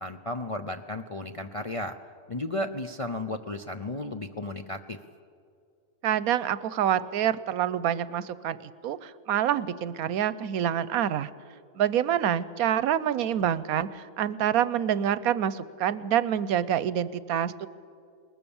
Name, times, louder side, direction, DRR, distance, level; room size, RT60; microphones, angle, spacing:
voice 1, 0.0-2.0 2.3-5.0, left 1 dB, 40° left, 5 dB, 0.5 m, -34 dB
voice 2, 6.0-11.3 11.8-17.7, right 10 dB, 85° right, 16 dB, 1.2 m, -27 dB
21.5 x 20.5 x 7.1 m, 2.3 s
omnidirectional pair, 1.5 m